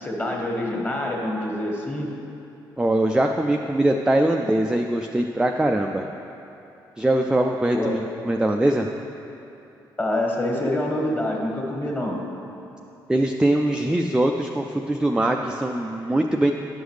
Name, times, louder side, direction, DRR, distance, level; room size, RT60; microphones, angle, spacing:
voice 1, 0.0-2.1 7.7-8.0 10.0-12.2, left 1 dB, 15° left, -1 dB, 1.6 m, -26 dB
voice 2, 2.8-6.1 7.0-8.9 13.1-16.5, right 1 dB, 5° right, 3 dB, 0.4 m, -22 dB
11.0 x 6.2 x 3.3 m, 2.9 s
figure-of-eight pair, 40°, 11 cm